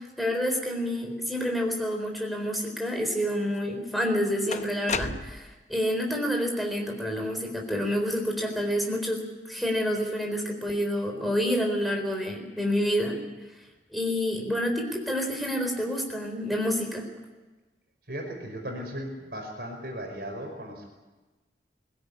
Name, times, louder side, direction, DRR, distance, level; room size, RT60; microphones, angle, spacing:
voice 1, 0.0-13.2 13.9-17.0, equal, ahead, 1 dB, 4.1 m, -28 dB
sound 1, 3.5-3.6 4.5-5.6, left 5 dB, 40° left, 0.8 m, -33 dB
voice 2, 18.1-20.9, equal, 60° right, 2 dB, 5.2 m, -36 dB
21.5 x 16.5 x 9.7 m, 1.2 s
head